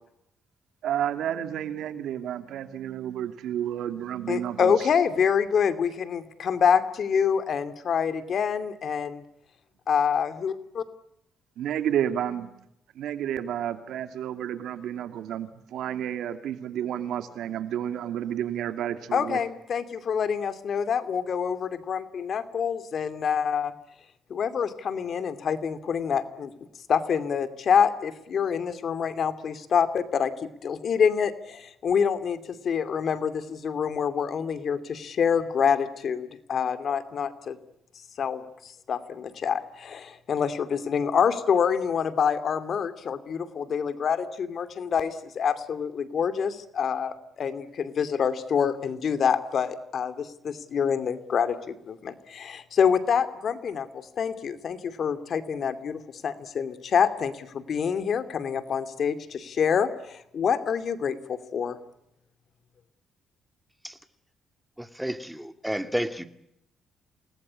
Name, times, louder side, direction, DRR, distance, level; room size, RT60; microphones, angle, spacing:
voice 1, 0.8-4.9 11.6-12.5 12.9-19.4, right 10 dB, 80° right, 9 dB, 2.5 m, -31 dB
voice 2, 4.3-9.2 9.9-10.9 19.1-23.7 24.3-26.5 26.9-37.6 38.2-61.8, left 7 dB, 55° left, 11 dB, 2.7 m, -26 dB
voice 3, 64.8-66.3, equal, 5° right, 9 dB, 2.4 m, -31 dB
28.5 x 19.5 x 9.9 m, 0.80 s
cardioid pair, 90°, 0 cm